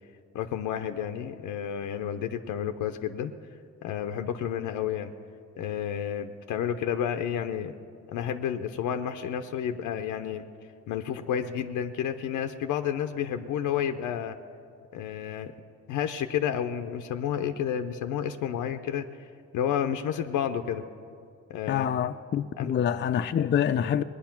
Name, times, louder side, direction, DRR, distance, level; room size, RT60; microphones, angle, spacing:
voice 1, 0.3-3.3 3.8-5.1 5.6-7.7 8.1-10.4 10.9-14.4 14.9-15.5 15.9-19.3 19.5-20.8 21.5-21.9 22.6-22.7, left 9 dB, 90° left, 0.7 m, -30 dB
voice 2, 21.7-24.0, left 9 dB, 40° left, 0.5 m, -26 dB
19.5 x 9.8 x 5.9 m
cardioid pair, 90°, 30 cm